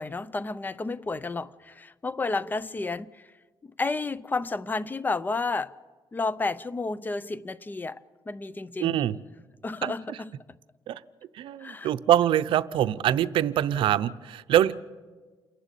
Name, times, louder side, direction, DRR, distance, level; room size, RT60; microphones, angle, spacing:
voice 1, 0.0-3.3 3.6-5.7 6.1-9.0 9.6-10.4 11.6-11.9, left 3 dB, 20° left, 0.5 m, -31 dB
voice 2, 8.8-9.2 9.8-9.9 10.9-11.0 11.4-14.7, right 11 dB, 75° right, 0.6 m, -24 dB
28.5 x 11.5 x 8.3 m
cardioid pair, 125°, 9 cm